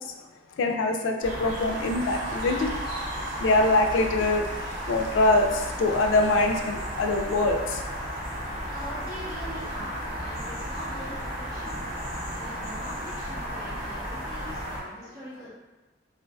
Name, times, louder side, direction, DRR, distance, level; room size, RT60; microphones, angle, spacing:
voice 1, 0.6-2.7 3.4-4.4 4.9-7.8, left 2 dB, 85° left, 4 dB, 0.3 m, -23 dB
sound 1, 1.2-14.8, equal, 30° right, 0.6 m, -34 dB
sound 2, 1.4-7.8, right 2 dB, 85° right, 0.4 m, -41 dB
voice 2, 8.7-11.8 12.3-15.5, equal, 50° right, -9 dB, 1.0 m, -42 dB
2.4 x 2.3 x 2.3 m, 1.1 s
head